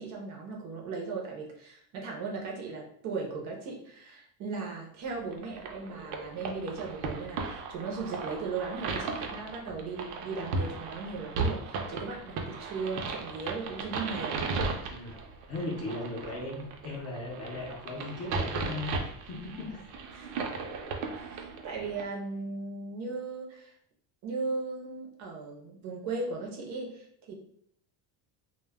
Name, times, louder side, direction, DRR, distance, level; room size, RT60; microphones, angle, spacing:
voice 1, 0.0-14.4 20.1-20.4 21.1-23.7 24.2-27.3, right 4 dB, 40° right, 0 dB, 0.5 m, -37 dB
sound 1, 5.3-22.0, right 4 dB, 85° right, 0.6 m, -36 dB
voice 2, 14.9-15.2 15.5-19.0 19.3-20.0, left 2 dB, 35° left, -2 dB, 0.4 m, -37 dB
2.1 x 2.0 x 3.3 m, 0.64 s
cardioid pair, 180°, 45 cm